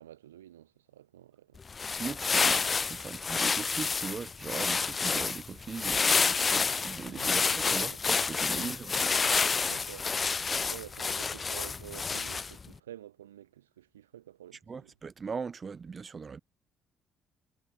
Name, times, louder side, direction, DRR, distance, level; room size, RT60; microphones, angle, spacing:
voice 1, 0.0-1.6 7.0-8.0 8.5-8.8 9.7-14.9, right 12 dB, 85° right, 3.9 m, -49 dB
sound 1, 1.6-12.7, left 5 dB, 35° left, 0.4 m, -29 dB
voice 2, 1.9-9.1 14.7-16.4, right 5 dB, 40° right, 2.8 m, -40 dB
figure-of-eight pair, 45°, 0 cm